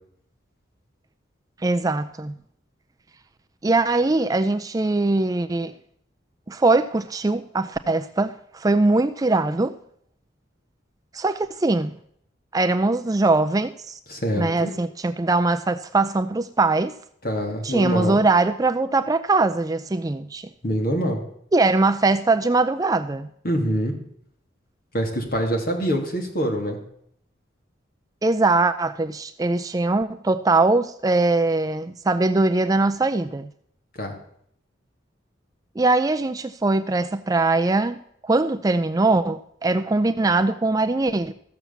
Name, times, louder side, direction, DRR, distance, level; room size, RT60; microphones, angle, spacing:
voice 1, 1.6-2.3 3.6-5.7 6.5-9.8 11.1-12.0 12.5-14.0 14.3-16.9 17.6-20.5 21.5-23.3 28.2-33.5 35.8-41.3, right 2 dB, 20° right, 0.4 m, -21 dB
voice 2, 14.1-14.7 17.2-18.2 20.6-21.2 23.4-23.9 24.9-26.8 34.0-34.1, equal, 50° left, 2.8 m, -25 dB
14.5 x 7.0 x 7.2 m
head